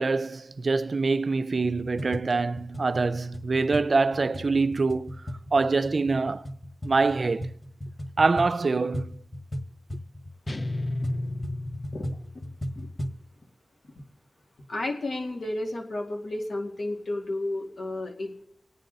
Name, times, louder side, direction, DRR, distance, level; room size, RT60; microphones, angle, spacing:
voice 1, 0.0-5.1 5.5-6.5 6.8-7.5 8.2-9.2, right 3 dB, 65° right, 0.4 m, -25 dB
sound 1, 1.6-13.2, equal, 20° left, 1.5 m, -37 dB
sound 2, 10.5-12.5, left 2 dB, 40° left, 0.6 m, -33 dB
voice 2, 14.7-18.5, left 2 dB, 80° left, 2.2 m, -32 dB
24.5 x 9.3 x 4.0 m
cardioid pair, 50°, 0 cm